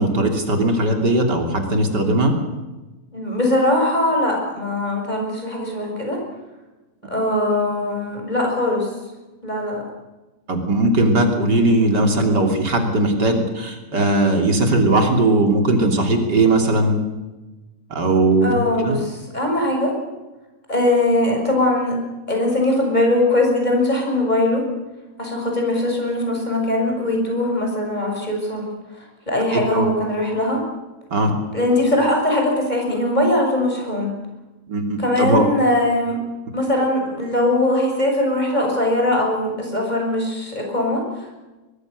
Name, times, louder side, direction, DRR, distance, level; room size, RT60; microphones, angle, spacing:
voice 1, 0.0-2.4 10.5-17.0 17.9-19.0 29.5-29.9 31.1-31.4 34.7-35.5, right 2 dB, 90° right, 4 dB, 3.7 m, -18 dB
voice 2, 3.1-6.2 7.0-8.9 9.4-9.8 18.4-19.9 20.7-22.0 22.3-24.6 25.2-28.7 29.0-30.6 31.5-34.1 35.0-36.2 36.5-41.4, left 1 dB, 25° left, 1 dB, 6.7 m, -21 dB
22.0 x 22.0 x 6.7 m, 1.1 s
omnidirectional pair, 1.8 m